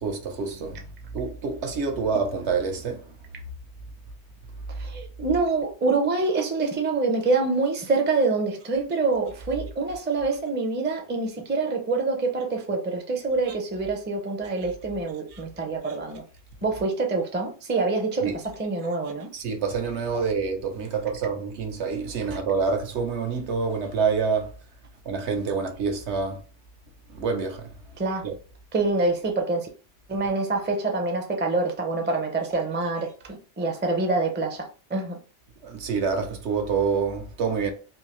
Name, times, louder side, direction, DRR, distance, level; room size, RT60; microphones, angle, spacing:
voice 1, 0.0-0.8 1.1-3.0 18.2-18.4 19.3-24.5 25.1-26.4 27.2-27.7 28.2-28.3 35.6-37.7, right 5 dB, 75° right, 1.0 m, -27 dB
voice 2, 4.8-16.2 16.6-19.3 28.0-28.2 28.7-29.7 30.1-35.2, right 3 dB, 15° right, 0.4 m, -26 dB
3.5 x 2.7 x 3.0 m
omnidirectional pair, 1.2 m